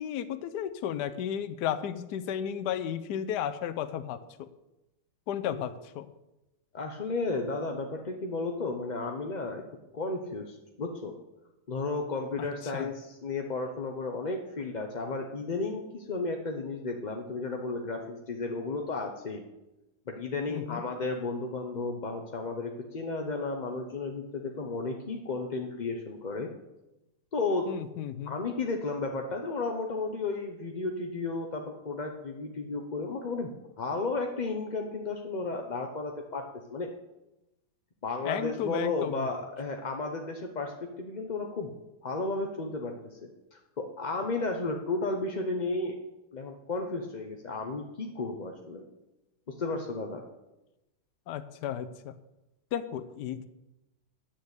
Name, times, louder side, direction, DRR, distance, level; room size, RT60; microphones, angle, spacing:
voice 1, 0.0-4.5 5.3-6.1 12.7-12.9 20.5-20.8 27.7-28.3 38.2-39.3 51.3-52.1 52.7-53.5, left 9 dB, 70° left, 12 dB, 1.2 m, -34 dB
voice 2, 6.7-9.6 9.9-11.1 11.7-19.4 20.1-26.5 27.3-27.7 28.2-33.5 33.8-36.9 38.0-41.7 42.0-46.0 46.3-48.8 49.5-50.2, left 3 dB, 35° left, 3 dB, 0.7 m, -33 dB
9.6 x 6.8 x 8.1 m, 0.95 s
omnidirectional pair, 1.9 m